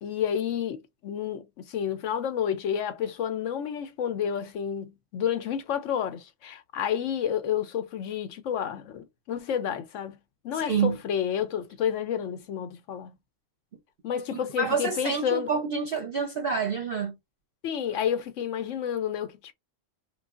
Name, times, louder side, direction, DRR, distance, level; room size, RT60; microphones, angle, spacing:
voice 1, 0.0-10.2 10.4-13.2 14.0-15.5 17.6-19.5, left 8 dB, 70° left, 0.8 m, -30 dB
voice 2, 10.6-11.0 14.3-17.1, right 5 dB, 50° right, 0.8 m, -28 dB
3.8 x 3.1 x 2.4 m
omnidirectional pair, 1.5 m